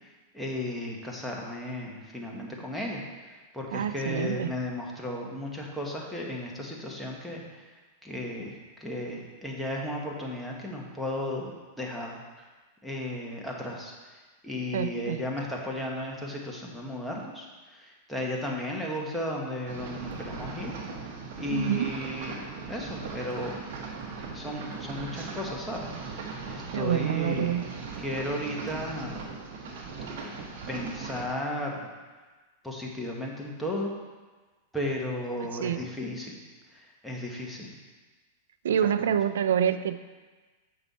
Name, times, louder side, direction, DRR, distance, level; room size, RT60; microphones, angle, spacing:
voice 1, 0.0-7.7 8.0-12.5 12.8-20.7 21.0-21.1 21.4-23.6 24.3-27.5 28.0-29.2 30.7-31.9 32.6-33.9 34.7-36.4 36.7-37.7 38.8-39.1, left 1 dB, ahead, -3 dB, 1.2 m, -35 dB
voice 2, 3.7-4.5 14.7-15.2 21.5-21.9 26.7-27.6 35.6-35.8 38.6-40.0, right 9 dB, 85° right, 12 dB, 0.3 m, -27 dB
sound 1, 19.7-31.2, right 4 dB, 60° right, 1.3 m, -39 dB
7.0 x 5.5 x 4.1 m, 1.3 s
supercardioid pair, 135°, 0 cm